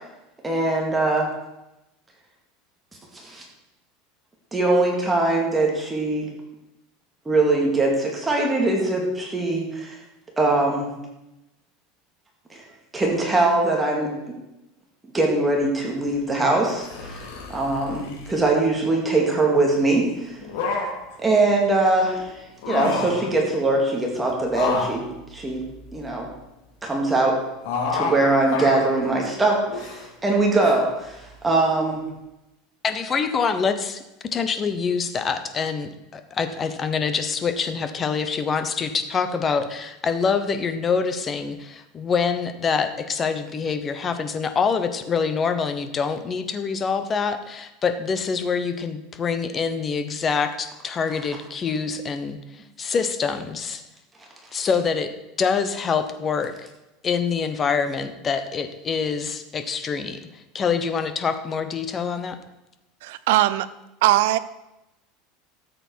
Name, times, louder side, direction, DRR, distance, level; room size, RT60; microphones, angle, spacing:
voice 1, 0.4-1.3 3.2-3.4 4.5-6.3 7.3-10.0 10.4-10.9 12.5-12.6 12.9-14.1 15.1-17.2 17.5-20.4 21.2-22.3 22.7-25.0 25.3-25.6 25.9-26.3 26.8-27.4 27.9-32.0, right 2 dB, 10° right, -1 dB, 2.2 m, -22 dB
sound 1, 16.8-18.5 20.3-21.1 22.5-23.3 24.5-26.3 27.6-28.2 28.5-29.0 29.7-30.0 30.6-30.7, left 4 dB, 80° left, 2.9 m, -29 dB
voice 2, 32.8-34.0 34.3-53.8 54.5-55.1 55.4-56.7 57.0-62.4, left 5 dB, 25° left, 9 dB, 0.9 m, -25 dB
voice 3, 63.0-63.7 64.0-64.4, right 15 dB, 75° right, 14 dB, 0.6 m, -19 dB
13.5 x 7.9 x 4.6 m, 0.95 s
supercardioid pair, 145°, 0 cm